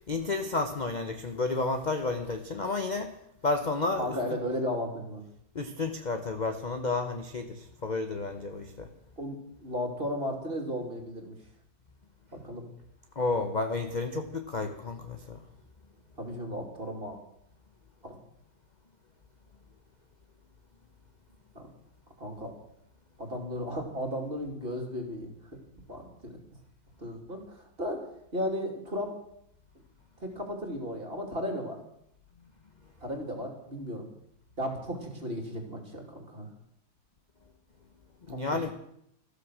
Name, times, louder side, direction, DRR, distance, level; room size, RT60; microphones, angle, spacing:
voice 1, 0.1-3.1 3.4-4.2 5.5-8.9 13.2-15.4 38.3-38.7, left 3 dB, 40° left, 6 dB, 0.6 m, -31 dB
voice 2, 4.0-5.2 9.2-11.3 12.4-12.7 16.2-17.2 18.0-18.1 21.5-21.7 22.2-22.5 23.2-25.3 25.9-26.4 27.0-28.1 28.3-29.2 30.2-31.8 33.0-34.1 34.6-36.5 38.3-38.4, equal, 30° right, 3 dB, 2.9 m, -35 dB
14.0 x 13.5 x 6.2 m, 0.75 s
omnidirectional pair, 2.2 m